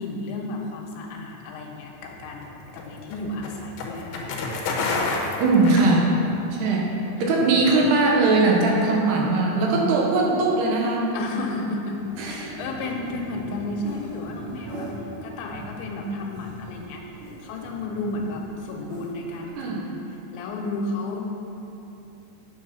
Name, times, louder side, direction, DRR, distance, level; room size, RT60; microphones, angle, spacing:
voice 1, 0.0-4.3 7.0-7.8 11.1-14.9 15.2-19.9 20.3-21.3, left 2 dB, 85° left, 0 dB, 3.3 m, -33 dB
sound 1, 2.0-6.5, left 3 dB, 70° left, 2.7 m, -29 dB
voice 2, 5.4-6.1 6.5-6.9 7.2-11.1 12.2-12.6 19.6-19.8, right 3 dB, 75° right, -2 dB, 3.0 m, -20 dB
sound 2, 12.0-19.5, right 1 dB, 45° right, 3.1 m, -40 dB
8.9 x 7.9 x 5.5 m, 2.9 s
omnidirectional pair, 5.1 m